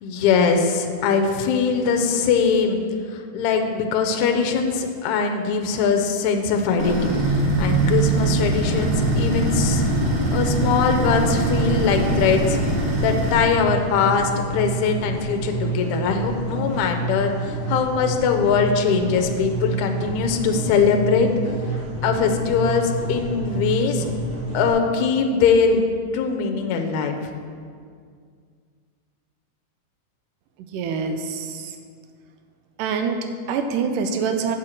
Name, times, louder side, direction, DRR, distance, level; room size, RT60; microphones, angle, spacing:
voice 1, 0.0-2.8 3.1-9.8 10.3-12.6 13.0-21.3 22.0-24.0 24.5-25.8 26.1-27.1, left 5 dB, 75° left, 4 dB, 1.9 m, -21 dB
sound 1, 6.8-13.4, right 2 dB, 55° right, 2.3 m, -22 dB
sound 2, 8.7-24.7, right 2 dB, 40° left, 1.7 m, -28 dB
voice 2, 30.7-31.7 32.8-34.6, right 5 dB, 85° right, 6 dB, 2.1 m, -25 dB
8.2 x 4.4 x 6.4 m, 2.1 s
omnidirectional pair, 3.7 m